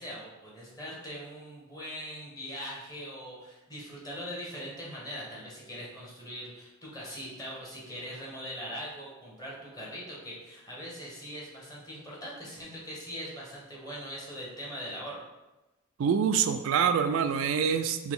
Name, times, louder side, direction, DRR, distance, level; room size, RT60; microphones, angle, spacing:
voice 1, 0.0-15.2, equal, 20° left, -5 dB, 1.3 m, -41 dB
voice 2, 16.0-18.1, right 7 dB, 70° right, 8 dB, 0.3 m, -26 dB
5.8 x 2.3 x 3.7 m, 1.0 s
head